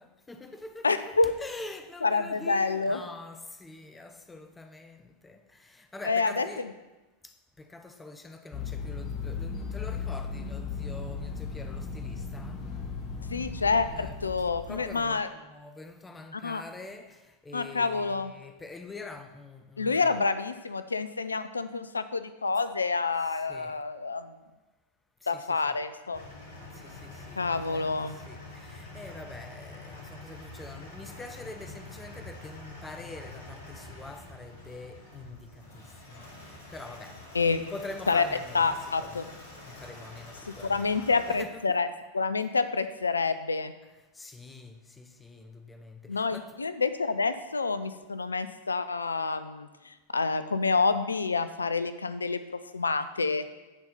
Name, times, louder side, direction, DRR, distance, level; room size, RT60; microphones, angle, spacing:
voice 1, 0.0-6.7 7.2-12.7 13.8-20.3 23.2-23.8 25.2-25.8 26.7-41.8 43.8-46.6, left 2 dB, 10° left, 0.7 m, -45 dB
voice 2, 0.8-1.3 2.0-3.0 6.1-6.5 13.3-15.3 16.3-16.6 17.5-18.3 19.8-24.3 25.3-26.2 27.4-28.1 37.3-37.6 38.1-38.2 38.5-39.2 40.7-41.9 42.1-43.7 46.1-52.4 52.7-53.4, left 4 dB, 75° left, 0.5 m, -28 dB
sound 1, 8.5-15.1, left 5 dB, 30° left, 1.4 m, -36 dB
sound 2, 26.1-41.4, left 2 dB, 55° left, 2.8 m, -46 dB
10.5 x 4.3 x 6.7 m
figure-of-eight pair, 90°, 0 cm